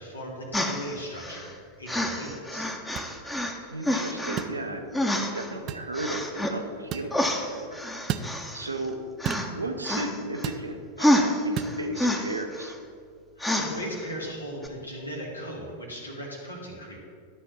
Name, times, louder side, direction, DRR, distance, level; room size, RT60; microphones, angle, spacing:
voice 1, 0.0-2.7 13.4-17.0, equal, 80° left, -2 dB, 2.1 m, -37 dB
sound 1, 0.5-1.5 1.9-3.6 3.8-4.4 4.9-5.5 5.9-6.6 7.1-8.9 9.2-9.5 9.8-10.5 11.0-12.7 13.4-14.0 14.6-14.7, left 1 dB, 5° left, 1.0 m, -28 dB
sound 2, 3.0-3.1 4.4-4.6 5.7-5.9 6.9-7.1 8.1-8.3 9.2-9.5 10.4-10.7 11.6-11.8, right 9 dB, 35° right, 0.5 m, -32 dB
voice 2, 3.7-4.9 5.1-8.2 8.5-9.0 9.5-12.8, right 2 dB, 80° right, 5 dB, 0.9 m, -35 dB
12.5 x 4.4 x 7.0 m, 2.2 s
figure-of-eight pair, 90°, 0 cm